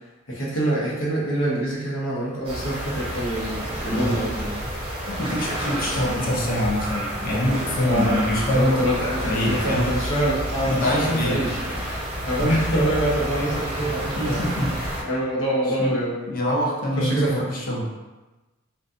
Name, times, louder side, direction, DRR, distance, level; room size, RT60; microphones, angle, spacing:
voice 1, 0.3-5.0 7.8-8.2 8.5-14.5 15.0-16.3 17.0-17.3, right 1 dB, 80° left, -6 dB, 0.8 m, -25 dB
sound 1, 2.4-15.0, equal, 30° right, 0.7 m, -29 dB
voice 2, 3.9-4.2 5.1-8.8 9.3-9.9 10.7-11.4 12.4-12.5 14.2-14.7 15.8-16.0 16.3-17.9, left 1 dB, 45° left, -3 dB, 0.5 m, -24 dB
2.6 x 2.2 x 2.4 m, 1.1 s
head